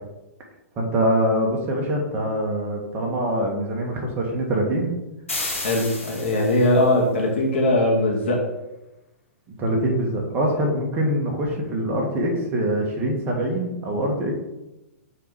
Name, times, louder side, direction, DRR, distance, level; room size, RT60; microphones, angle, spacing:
voice 1, 0.8-4.9 9.6-14.3, right 1 dB, 25° right, 0 dB, 1.8 m, -24 dB
sound 1, 5.3-6.8, left 2 dB, 70° left, 2.4 m, -31 dB
voice 2, 5.6-8.4, left 1 dB, 50° left, -1 dB, 2.1 m, -20 dB
6.6 x 4.2 x 5.1 m, 0.99 s
figure-of-eight pair, 110°, 7 cm